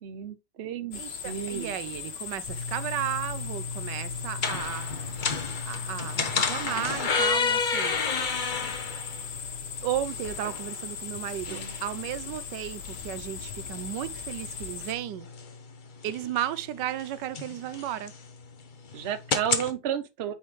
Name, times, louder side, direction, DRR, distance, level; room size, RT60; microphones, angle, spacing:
voice 1, 0.0-1.7 11.5-11.7 18.9-20.3, right 9 dB, 50° right, 0.8 m, -33 dB
sound 1, 0.9-14.9, left 7 dB, 75° left, 1.7 m, -39 dB
voice 2, 0.9-8.0 9.8-15.3 16.0-18.1, right 12 dB, 85° right, 1.3 m, -34 dB
sound 2, 2.5-19.7, left 5 dB, 40° left, 0.8 m, -32 dB
8.5 x 4.3 x 3.2 m
omnidirectional pair, 1.8 m